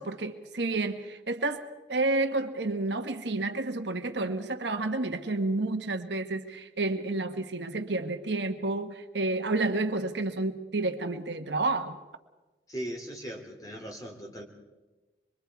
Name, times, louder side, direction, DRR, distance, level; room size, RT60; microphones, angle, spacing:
voice 1, 0.0-12.0, right 2 dB, 70° right, 7 dB, 1.3 m, -30 dB
voice 2, 12.7-14.4, right 1 dB, 20° left, 1 dB, 2.8 m, -39 dB
25.5 x 23.0 x 4.7 m, 1.1 s
head